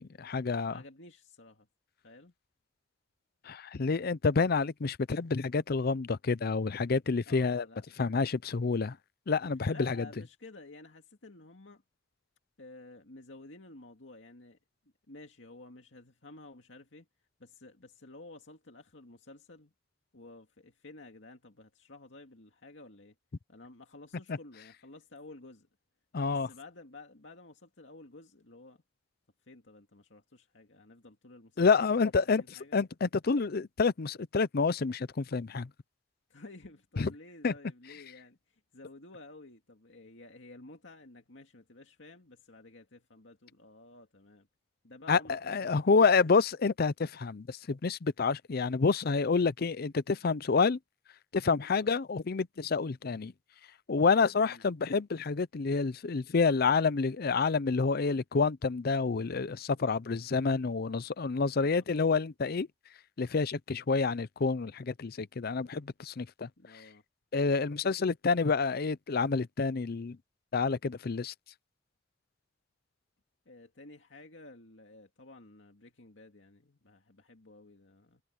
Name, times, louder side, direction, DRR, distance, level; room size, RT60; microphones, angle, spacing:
voice 1, 0.0-0.8 3.5-7.6 8.0-9.0 9.3-10.0 26.1-26.5 31.6-32.4 32.7-35.7 37.0-37.1 37.4-37.5 45.1-45.2 45.5-50.8 51.3-53.3 53.9-62.7 63.2-66.5 67.3-70.2 70.5-71.3, left 4 dB, 55° left, 0.6 m, -28 dB
voice 2, 0.6-1.7 2.0-2.3 7.3-8.1 9.7-11.8 12.6-14.6 15.1-17.1 17.4-19.7 20.1-23.2 23.5-25.7 26.3-28.8 29.4-31.7 31.9-32.8 36.3-44.5 44.8-46.4 51.7-52.0 54.4-54.6 61.6-61.9 66.6-67.0 73.5-78.2, left 2 dB, 75° left, 2.3 m, -52 dB
head